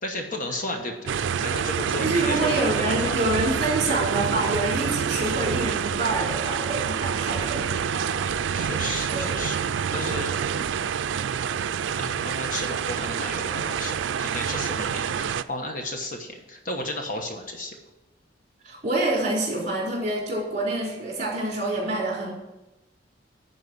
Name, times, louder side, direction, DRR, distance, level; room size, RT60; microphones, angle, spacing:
voice 1, 0.0-3.4 7.9-9.6 9.9-11.0 12.0-17.7, left 1 dB, 45° left, 3 dB, 1.2 m, -34 dB
sound 1, 1.1-15.4, right 7 dB, 85° right, 0.4 m, -27 dB
voice 2, 2.0-7.9 9.1-9.3 18.6-22.3, right 2 dB, 40° right, -4 dB, 4.1 m, -27 dB
11.0 x 4.7 x 7.8 m, 1.0 s
head